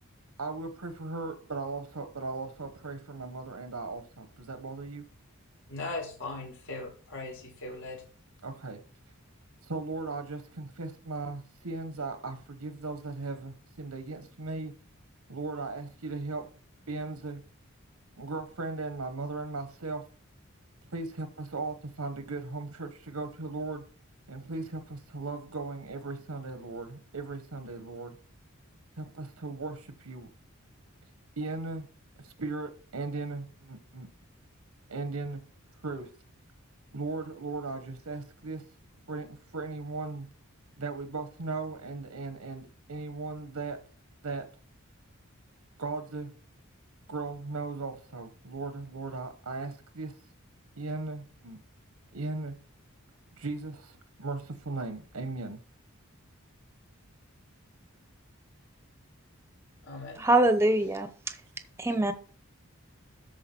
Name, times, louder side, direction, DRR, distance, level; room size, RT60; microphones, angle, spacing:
voice 1, 0.4-5.0 8.4-8.8 9.6-14.7 15.3-16.5 16.9-17.4 18.2-20.0 20.9-23.8 24.3-28.1 29.0-30.3 31.4-31.9 32.2-34.1 34.9-35.4 35.8-36.1 36.9-38.6 39.1-40.3 40.8-43.8 44.2-44.5 45.8-46.3 47.1-50.1 50.8-51.6 52.1-52.5 53.4-55.6, right 3 dB, 90° right, 1.1 m, -37 dB
voice 2, 5.7-8.0 59.8-60.2, left 2 dB, 70° left, 5.1 m, -39 dB
voice 3, 60.2-61.1 61.8-62.1, right 1 dB, 10° right, 0.8 m, -23 dB
13.0 x 4.7 x 4.4 m
head